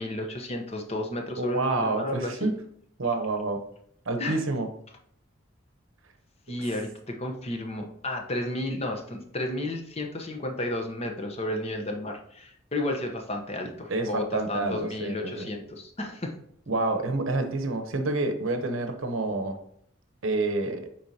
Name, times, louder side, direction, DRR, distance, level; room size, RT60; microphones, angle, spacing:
voice 1, 0.0-2.5 4.2-4.4 6.5-16.4, left 1 dB, 30° left, 3 dB, 0.8 m, -32 dB
voice 2, 1.4-2.5 3.0-3.6 4.1-4.7 13.9-15.5 16.7-19.6 20.2-20.9, right 2 dB, 75° right, 6 dB, 0.9 m, -28 dB
7.5 x 4.6 x 2.8 m, 0.67 s
head